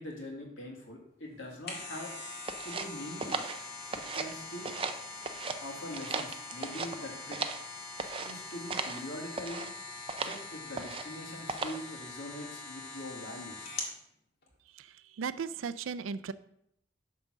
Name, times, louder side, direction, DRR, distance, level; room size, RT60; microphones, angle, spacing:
voice 1, 0.0-2.1 2.6-3.5 4.1-4.7 5.6-7.4 8.2-9.7 10.2-13.7, left 1 dB, 75° left, 0 dB, 2.1 m, -43 dB
sound 1, 1.4-14.0 14.4-14.5, left 3 dB, 55° left, 1.7 m, -43 dB
sound 2, 2.5-4.4 4.6-5.6 5.9-7.7 8.0-8.3 8.7-9.0 9.3-9.7 10.1-10.4 10.7-11.2 11.5-11.9, right 4 dB, 25° right, 0.5 m, -37 dB
voice 2, 14.7-16.3, right 6 dB, 90° right, 15 dB, 0.4 m, -37 dB
9.0 x 3.8 x 6.2 m, 0.75 s
head